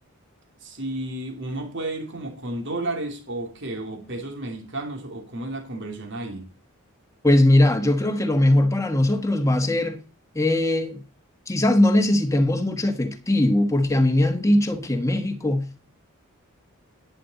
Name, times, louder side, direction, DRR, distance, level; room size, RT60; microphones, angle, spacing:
voice 1, 0.6-6.5, right 2 dB, 55° right, 2.8 m, -32 dB
voice 2, 7.2-10.0 10.3-11.0 11.5-15.8, left 1 dB, 15° left, 1.3 m, -20 dB
11.0 x 9.5 x 4.1 m
head